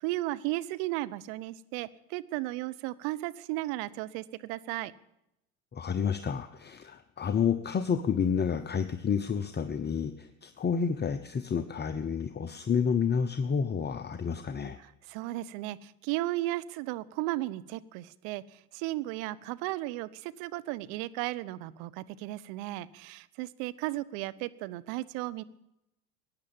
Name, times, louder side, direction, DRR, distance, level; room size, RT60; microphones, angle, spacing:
voice 1, 0.0-4.9 15.1-25.4, right 17 dB, 65° right, 16 dB, 0.9 m, -35 dB
voice 2, 5.7-14.8, left 6 dB, 25° left, 9 dB, 0.8 m, -30 dB
15.5 x 9.8 x 9.0 m, 0.85 s
hypercardioid pair, 80°, 42 cm